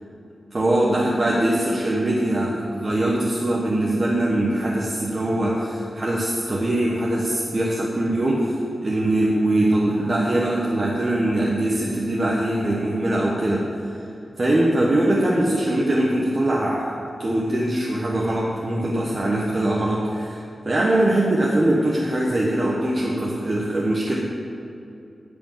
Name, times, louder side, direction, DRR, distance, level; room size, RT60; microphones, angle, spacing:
voice 1, 0.5-14.0 14.4-24.2, right 1 dB, 30° right, -4 dB, 1.3 m, -22 dB
15.0 x 5.1 x 7.4 m, 2.7 s
wide cardioid pair, 150°, 0 cm